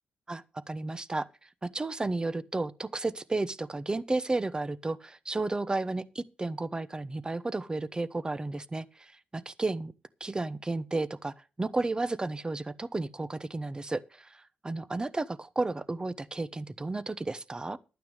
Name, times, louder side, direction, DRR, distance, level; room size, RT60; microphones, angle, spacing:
voice 1, 0.3-9.9 10.2-17.8, right 2 dB, 25° right, 0.9 m, -33 dB
11.5 x 9.3 x 5.1 m
cardioid pair, 65°, 4 cm